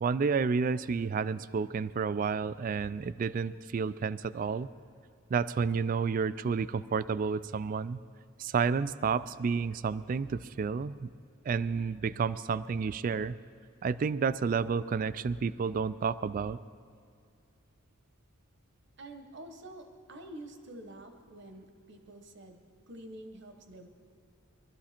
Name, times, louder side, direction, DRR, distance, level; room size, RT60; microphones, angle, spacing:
voice 1, 0.0-4.7 5.3-8.0 8.4-11.1 11.5-13.4 13.8-16.6, right 5 dB, 40° right, 16 dB, 0.3 m, -30 dB
voice 2, 19.0-22.6 22.9-23.9, right 1 dB, 55° right, 6 dB, 1.2 m, -48 dB
22.5 x 13.0 x 4.3 m, 2.2 s
head